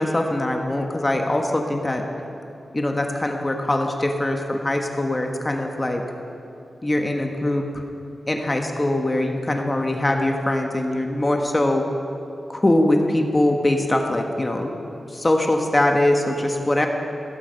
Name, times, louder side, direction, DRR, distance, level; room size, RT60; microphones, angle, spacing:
voice 1, 0.0-2.0 2.7-6.0 6.8-7.8 8.3-11.9 12.5-14.7 15.1-16.9, left 1 dB, 20° left, 3 dB, 1.3 m, -22 dB
16.5 x 14.5 x 5.3 m, 2.9 s
wide cardioid pair, 100°, 0 cm